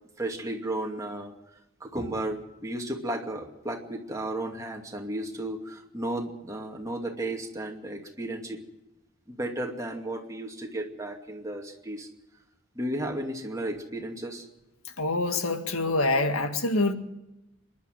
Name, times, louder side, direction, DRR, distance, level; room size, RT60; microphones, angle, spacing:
voice 1, 0.2-8.6 9.3-12.1 12.7-14.5, right 1 dB, 15° right, 2 dB, 2.5 m, -34 dB
voice 2, 15.0-16.9, left 2 dB, 85° left, 7 dB, 2.0 m, -25 dB
26.0 x 11.5 x 9.2 m, 0.96 s
head